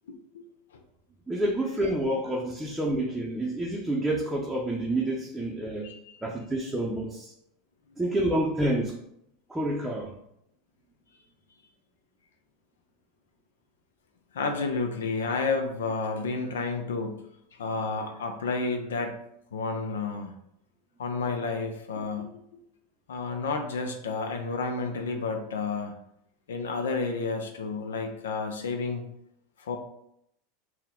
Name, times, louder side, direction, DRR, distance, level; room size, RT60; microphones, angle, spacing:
voice 1, 0.1-0.4 0.7-0.8 5.8-6.2 14.3-17.2 17.5-19.2 19.5-20.3 21.0-22.3 23.1-25.9 26.5-29.1 29.6-29.8, left 4 dB, 85° left, 5 dB, 0.5 m, -31 dB
voice 2, 1.3-5.9 6.2-7.3 8.0-9.0 9.5-10.1, right 1 dB, 5° right, -3 dB, 0.6 m, -28 dB
4.4 x 2.2 x 3.6 m, 0.76 s
hypercardioid pair, 105°, 0 cm